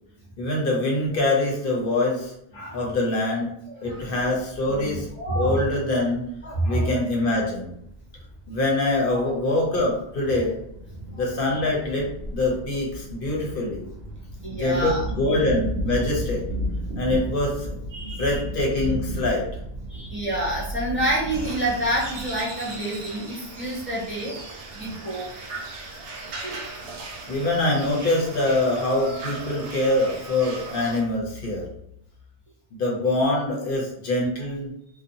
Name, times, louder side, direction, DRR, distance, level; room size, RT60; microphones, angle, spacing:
voice 1, 0.4-3.5 3.8-5.1 5.3-6.2 6.6-7.7 8.5-10.6 11.1-13.9 14.6-16.4 17.0-17.8 18.0-19.5 26.8-26.9 27.3-31.7 32.7-34.7, left 2 dB, 55° left, -2 dB, 0.8 m, -24 dB
voice 2, 3.7-4.0 4.7-5.6 6.4-6.9 9.1-9.3 10.2-10.3 11.1-11.2 14.4-15.4 17.9-18.4 19.9-24.4 24.7-25.3 26.4-26.6, right 1 dB, 10° left, -6 dB, 0.7 m, -28 dB
sound 1, 3.9-22.4, right 1 dB, 60° right, 0.9 m, -35 dB
sound 2, 21.3-31.0, right 3 dB, 85° right, 1.0 m, -38 dB
2.6 x 2.2 x 2.6 m, 0.76 s
omnidirectional pair, 1.2 m